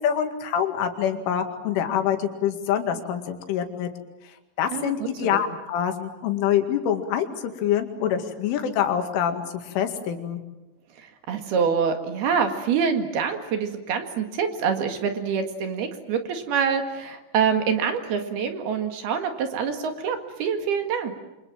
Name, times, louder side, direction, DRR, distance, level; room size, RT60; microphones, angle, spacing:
voice 1, 0.0-3.9 4.6-10.4, left 9 dB, 85° left, 6 dB, 4.6 m, -25 dB
voice 2, 4.7-5.4 11.0-21.1, right 6 dB, 60° right, 5 dB, 3.6 m, -26 dB
28.5 x 26.0 x 7.5 m, 1.0 s
omnidirectional pair, 5.4 m